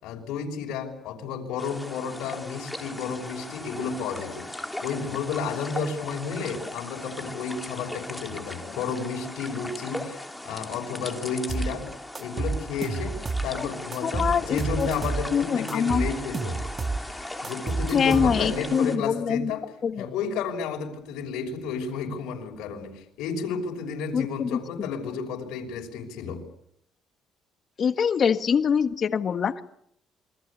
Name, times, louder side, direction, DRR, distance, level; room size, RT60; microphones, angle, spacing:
voice 1, 0.0-11.9 12.2-16.6 17.4-19.7 20.0-26.4, left 5 dB, 90° left, 1 dB, 6.0 m, -32 dB
sound 1, 1.6-19.0, left 1 dB, 5° left, 3.4 m, -39 dB
sound 2, 11.5-11.7 12.2-13.5 13.9-15.3 15.7-17.0 17.4-18.6, right 3 dB, 30° right, 2.4 m, -29 dB
voice 2, 14.0-14.9 15.3-16.1 17.9-19.5 19.8-20.1 24.1-24.6 27.8-29.6, left 7 dB, 50° left, 10 dB, 1.5 m, -24 dB
28.0 x 23.5 x 8.5 m, 0.74 s
cardioid pair, 105°, 0 cm